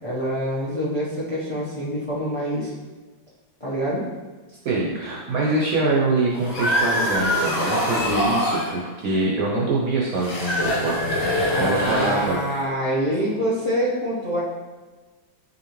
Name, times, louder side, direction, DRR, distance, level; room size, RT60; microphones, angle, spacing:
voice 1, 0.0-2.7 3.6-4.1 11.5-14.4, equal, 45° left, -7 dB, 0.4 m, -26 dB
voice 2, 4.6-12.4, right 2 dB, 70° right, -4 dB, 0.8 m, -24 dB
sound 1, 6.3-8.7 10.1-12.6, left 1 dB, 80° left, 1.9 m, -24 dB
6.7 x 2.6 x 3.0 m, 1.3 s
omnidirectional pair, 2.1 m